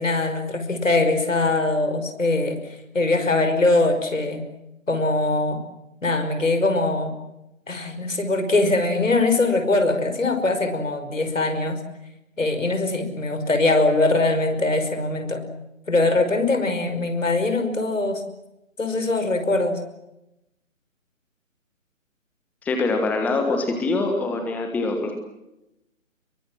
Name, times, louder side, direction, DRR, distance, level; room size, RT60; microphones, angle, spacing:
voice 1, 0.0-2.6 2.9-4.4 4.9-5.6 6.0-7.1 7.7-11.8 12.4-15.4 15.9-18.2 18.8-19.8, left 2 dB, 70° left, 8 dB, 5.4 m, -22 dB
voice 2, 22.6-25.2, left 3 dB, 5° left, 4 dB, 1.4 m, -24 dB
26.0 x 23.0 x 7.6 m, 0.90 s
figure-of-eight pair, 145°, 40 cm